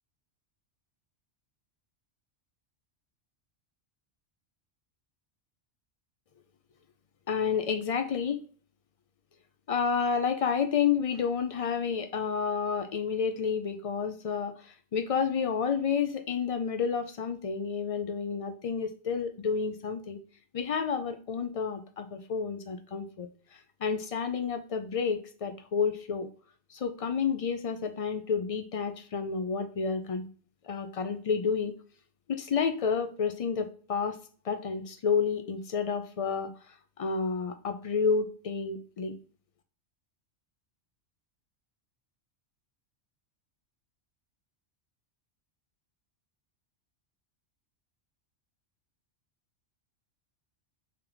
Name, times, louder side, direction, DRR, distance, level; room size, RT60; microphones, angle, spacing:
voice 1, 7.3-8.4 9.7-20.2 20.5-23.3 23.8-26.3 26.7-30.3 30.6-31.8 32.3-34.2 34.4-36.5 37.0-39.2, left 6 dB, 60° left, 7 dB, 0.3 m, -30 dB
3.5 x 2.9 x 3.7 m, 0.41 s
omnidirectional pair, 1.2 m